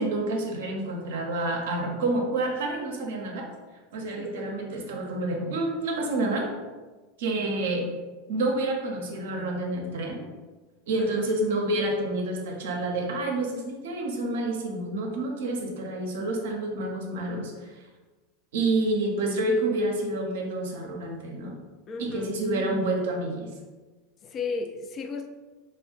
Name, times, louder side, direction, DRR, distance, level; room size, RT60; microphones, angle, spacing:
voice 1, 0.0-3.5 3.9-6.5 7.2-7.9 8.3-10.2 10.9-17.8 18.5-21.6 22.0-23.5, right 2 dB, 75° right, 0.5 m, -28 dB
voice 2, 4.1-4.6 11.0-11.3 21.9-22.4 24.2-25.3, left 4 dB, 35° left, 0.3 m, -34 dB
2.3 x 2.1 x 3.7 m
hypercardioid pair, 90°, 0 cm